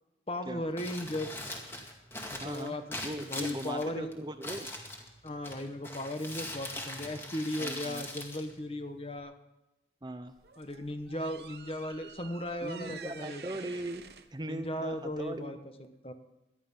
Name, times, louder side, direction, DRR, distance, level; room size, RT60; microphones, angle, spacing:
voice 1, 0.3-1.5 2.3-4.1 5.2-9.3 10.6-13.4 14.5-16.1, left 1 dB, 35° left, 8 dB, 1.2 m, -37 dB
Crumpling crinkling, 0.6-9.2, left 1 dB, 15° left, 2.2 m, -42 dB
voice 2, 2.4-2.8 3.0-4.7 7.6-8.0 10.0-10.4 12.6-15.6, right 1 dB, 25° right, 9 dB, 0.8 m, -39 dB
sound 1, 10.3-15.5, right 6 dB, 70° right, 0.9 m, -50 dB
19.0 x 13.0 x 5.6 m, 0.98 s
head